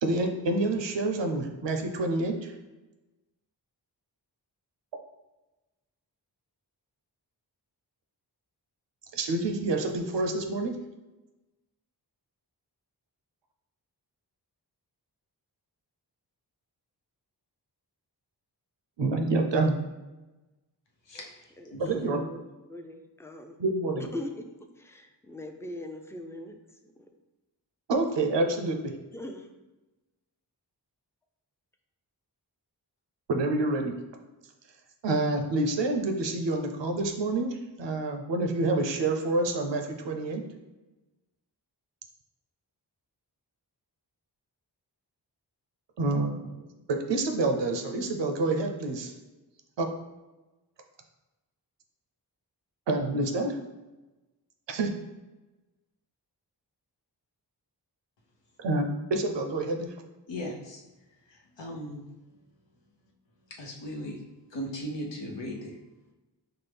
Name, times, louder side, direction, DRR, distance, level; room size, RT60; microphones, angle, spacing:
voice 1, 0.0-2.5 9.1-10.7 19.0-19.8 21.8-22.2 23.6-24.1 27.9-28.9 33.3-33.9 35.0-40.4 46.0-49.1 49.8-49.9 52.9-53.6 54.7-54.9 58.6-59.9, right 2 dB, 85° right, 4 dB, 0.6 m, -28 dB
voice 2, 21.0-22.0 60.3-60.8 61.2-62.1 63.0-63.1 63.5-64.2 64.5-66.1, equal, 85° left, -1 dB, 0.8 m, -38 dB
voice 3, 21.6-23.6 24.1-24.5 24.8-26.6 26.8-27.1 29.1-29.5, left 1 dB, 5° left, 4 dB, 0.4 m, -41 dB
5.7 x 2.0 x 3.4 m, 1.1 s
wide cardioid pair, 70°, 42 cm